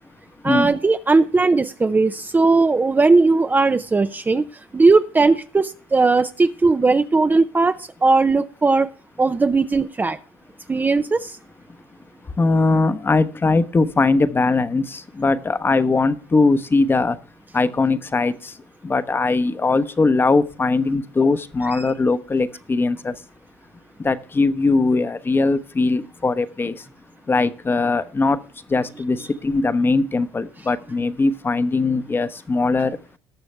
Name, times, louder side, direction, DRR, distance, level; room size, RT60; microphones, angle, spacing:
voice 1, 0.4-4.5 4.7-8.9 9.2-10.2 10.7-11.4, right 3 dB, 15° right, 10 dB, 0.6 m, -18 dB
voice 2, 12.4-17.2 17.5-18.5 18.8-23.1 24.0-26.8 27.3-28.4 28.7-32.9, left 3 dB, 20° left, 13 dB, 1.0 m, -20 dB
19.0 x 6.9 x 3.3 m, 0.38 s
supercardioid pair, 90°, 10 cm